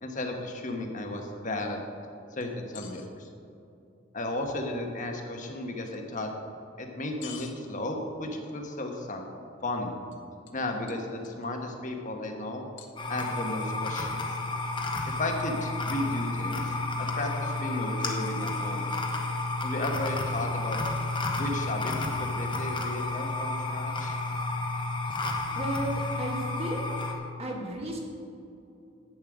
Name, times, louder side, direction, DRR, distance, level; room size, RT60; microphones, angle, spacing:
voice 1, 0.0-1.8 2.3-3.3 4.1-6.3 6.8-9.2 9.6-9.9 10.5-12.7 13.1-14.2 15.1-18.9 19.6-20.8 21.4-24.1, left 1 dB, 40° left, 3 dB, 1.3 m, -34 dB
sound 1, 2.4-3.1 5.9-6.0 7.2-7.6 10.1-10.2 10.5-10.6 10.9-11.5 12.8-13.4, left 9 dB, 65° left, 1.0 m, -47 dB
sound 2, 13.0-27.1, left 2 dB, 25° left, 1.1 m, -31 dB
voice 2, 25.6-26.9 27.4-28.0, right 1 dB, 30° right, -1 dB, 1.7 m, -33 dB
10.5 x 8.6 x 5.0 m, 2.7 s
head